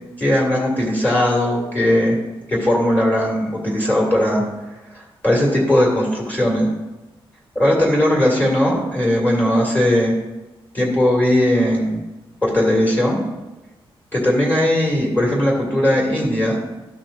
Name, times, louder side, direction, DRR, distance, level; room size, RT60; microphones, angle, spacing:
voice 1, 0.2-2.2 2.5-4.4 4.9-6.7 7.5-10.2 10.7-12.0 12.4-13.2 14.1-16.6, left 1 dB, 15° left, -3 dB, 2.3 m, -18 dB
14.0 x 5.7 x 2.6 m, 1.1 s
wide cardioid pair, 175°, 10 cm